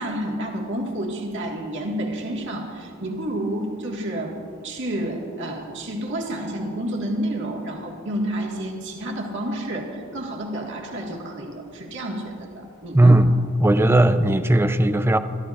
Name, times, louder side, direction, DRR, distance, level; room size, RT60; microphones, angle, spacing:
voice 1, 0.0-4.4 4.6-13.2, right 1 dB, 60° right, -1 dB, 1.8 m, -30 dB
voice 2, 12.9-13.3 13.6-15.2, right 1 dB, 10° right, 10 dB, 0.5 m, -16 dB
25.5 x 13.5 x 2.5 m, 2.6 s
head